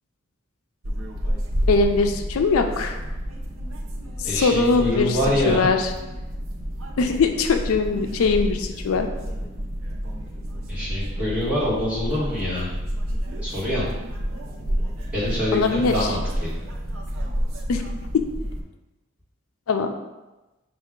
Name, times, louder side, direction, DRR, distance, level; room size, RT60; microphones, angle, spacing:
plane intercom tone, 0.8-18.6, equal, 75° right, 0.6 m, -30 dB
voice 1, 1.7-3.0 4.2-5.2 5.5-5.9 7.0-9.1 15.5-16.1 17.7-17.8 19.7-19.9, left 4 dB, 90° left, 6 dB, 0.4 m, -21 dB
voice 2, 4.2-5.7 10.7-12.7 13.4-13.9 15.1-16.5, left 1 dB, 5° right, -10 dB, 1.4 m, -25 dB
5.4 x 2.3 x 3.6 m, 1.1 s
head